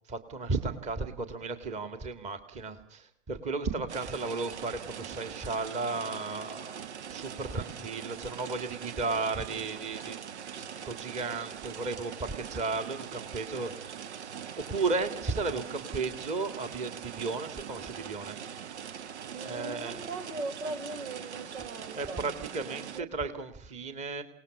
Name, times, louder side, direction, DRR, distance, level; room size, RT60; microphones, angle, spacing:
voice 1, 0.1-6.8 7.1-10.2 10.6-18.6 19.4-20.1 22.0-24.2, right 3 dB, 15° right, 9 dB, 2.0 m, -34 dB
sound 1, 3.9-23.0, right 8 dB, 55° right, 1.0 m, -42 dB
voice 2, 19.3-23.1, right 2 dB, 70° right, 12 dB, 4.4 m, -40 dB
28.5 x 19.0 x 7.1 m, 0.62 s
hypercardioid pair, 125°, 39 cm